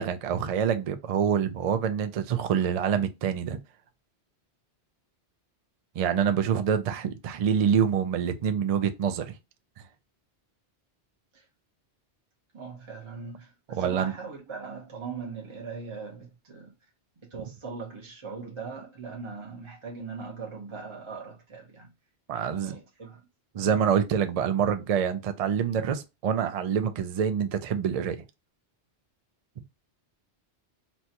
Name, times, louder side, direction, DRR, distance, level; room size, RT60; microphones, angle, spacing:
voice 1, 0.0-3.6 6.0-9.3 13.7-14.1 22.3-22.8 23.5-28.2, right 8 dB, 65° right, 0.3 m, -26 dB
voice 2, 12.5-16.7 17.3-21.9 22.3-23.2, right 5 dB, 30° right, 0.7 m, -40 dB
4.1 x 2.3 x 2.8 m
omnidirectional pair, 1.2 m